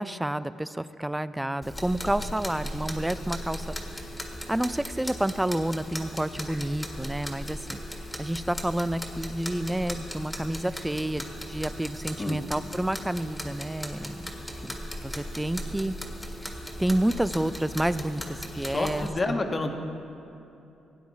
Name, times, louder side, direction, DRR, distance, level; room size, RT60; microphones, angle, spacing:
voice 1, 0.0-3.7 4.5-7.8 8.2-14.3 14.6-15.9 16.4-16.5 16.8-19.4, right 1 dB, 5° right, 15 dB, 0.4 m, -29 dB
sound 1, 1.6-19.1, equal, 10° left, 1.6 m, -38 dB
voice 2, 18.5-19.7, left 2 dB, 30° left, 5 dB, 1.2 m, -29 dB
17.0 x 9.4 x 4.2 m, 2.9 s
cardioid pair, 90°, 0 cm